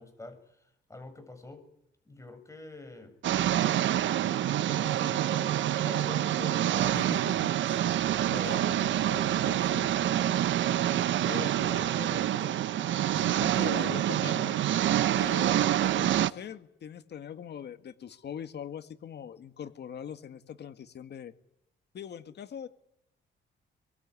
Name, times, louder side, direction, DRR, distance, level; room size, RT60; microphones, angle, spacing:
voice 1, 0.0-1.6 2.1-3.2 4.6-7.0 8.3-8.5, left 2 dB, 15° left, 7 dB, 7.3 m, -46 dB
sound 1, 3.2-16.3, right 12 dB, 75° right, 1.1 m, -27 dB
voice 2, 6.9-7.8 8.3-9.9 11.3-14.6 15.1-21.3 21.9-22.7, left 8 dB, 60° left, 9 dB, 2.1 m, -42 dB
25.0 x 23.0 x 9.9 m, 0.77 s
cardioid pair, 90°, 20 cm